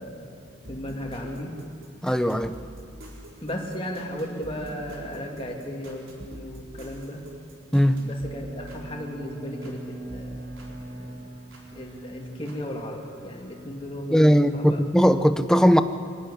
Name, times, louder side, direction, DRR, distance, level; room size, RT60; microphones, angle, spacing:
voice 1, 0.0-1.5 3.4-7.2 8.0-11.3 11.7-14.8, equal, 25° left, 0 dB, 2.5 m, -36 dB
sound 1, 0.6-9.8 10.1-11.7 12.5-12.6, equal, 80° right, 4.4 m, -46 dB
voice 2, 2.0-2.6 7.7-8.0 14.1-15.8, equal, 5° left, 10 dB, 0.7 m, -19 dB
Bowed string instrument, 7.9-14.5, right 1 dB, 60° right, 4.5 m, -42 dB
25.0 x 11.5 x 10.0 m, 2.3 s
head